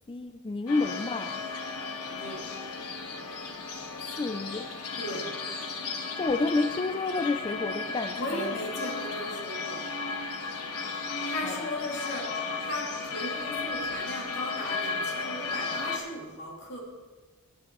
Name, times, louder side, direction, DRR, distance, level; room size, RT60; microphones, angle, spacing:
voice 1, 0.1-1.4 4.0-4.7 6.2-8.6 11.4-11.7, left 3 dB, 25° left, 8 dB, 0.4 m, -30 dB
sound 1, 0.7-16.0, left 4 dB, 85° left, 1.3 m, -35 dB
voice 2, 2.1-2.5 5.0-5.4 8.2-9.9 10.9-16.8, left 1 dB, 55° left, -2 dB, 2.6 m, -37 dB
16.0 x 9.8 x 3.1 m, 1.3 s
head